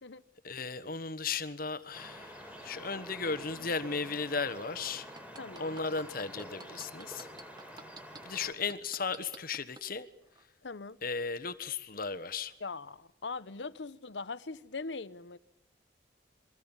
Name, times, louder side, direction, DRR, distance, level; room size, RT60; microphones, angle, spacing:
voice 1, 0.4-5.1 5.6-7.3 8.2-10.1 11.0-12.6, left 4 dB, 55° left, 1.4 m, -36 dB
sound 1, 1.9-8.5, equal, 10° right, 4.6 m, -48 dB
sound 2, 5.0-8.2 8.7-9.8 10.3-10.4, right 3 dB, 25° right, 1.3 m, -48 dB
voice 2, 5.4-5.8 10.6-11.0 12.6-15.4, left 4 dB, 85° left, 0.9 m, -41 dB
28.0 x 23.0 x 7.3 m
head